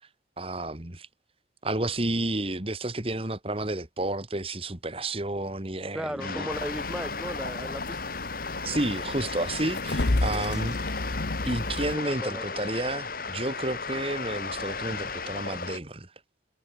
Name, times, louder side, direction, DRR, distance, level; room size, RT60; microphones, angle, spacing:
voice 1, 0.4-1.1 1.6-6.5 8.6-10.8 11.4-16.1, right 2 dB, 30° right, 2.1 m, -31 dB
voice 2, 5.9-8.1 10.3-10.6 11.1-11.2 12.0-12.4, equal, 5° right, 2.5 m, -36 dB
sound 1, 6.2-15.8, left 4 dB, 50° left, 4.0 m, -35 dB
sound 2, 6.5-12.0, left 2 dB, 65° left, 1.2 m, -32 dB
head